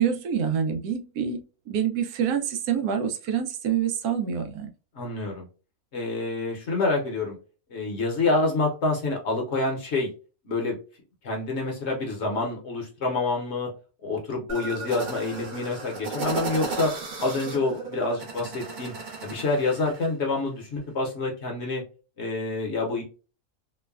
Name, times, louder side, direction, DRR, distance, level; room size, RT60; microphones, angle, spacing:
voice 1, 0.0-4.7, right 8 dB, 85° right, 1.1 m, -26 dB
voice 2, 4.9-5.5 5.9-7.4 7.7-10.1 10.4-10.8 11.2-13.7 14.0-16.9 17.2-18.9 19.2-21.8 22.2-23.0, left 3 dB, 55° left, 0.9 m, -27 dB
sound 1, 14.5-20.1, right 4 dB, 50° right, 0.6 m, -35 dB
3.1 x 2.1 x 2.2 m
omnidirectional pair, 1.6 m